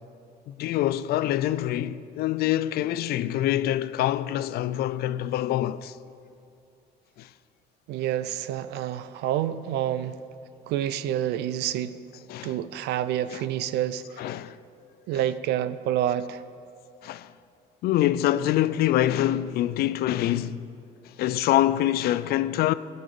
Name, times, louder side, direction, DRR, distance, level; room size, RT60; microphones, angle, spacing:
voice 1, 0.5-6.0 7.2-7.3 12.3-12.6 13.3-13.4 14.2-14.6 17.0-17.3 17.8-20.7 21.0-22.7, left 13 dB, 70° left, 0.4 m, -25 dB
voice 2, 7.9-10.2 10.7-12.0 12.4-14.3 15.1-16.4, right 11 dB, 80° right, 0.5 m, -28 dB
15.5 x 5.4 x 7.7 m
cardioid pair, 110°, 17 cm